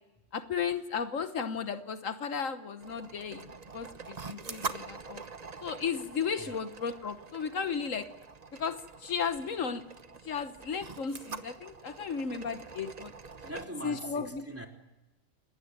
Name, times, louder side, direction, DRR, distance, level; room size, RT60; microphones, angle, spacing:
voice 1, 0.3-5.2 5.6-8.1 8.6-8.8 9.0-9.8 10.3-13.1 13.8-14.4, left 6 dB, 75° left, 10 dB, 1.5 m, -34 dB
sound 1, 2.8-13.7, right 4 dB, 35° right, 1.0 m, -44 dB
voice 2, 13.4-14.7, equal, 10° right, 2 dB, 3.5 m, -41 dB
29.5 x 19.0 x 9.7 m, 0.99 s
omnidirectional pair, 1.4 m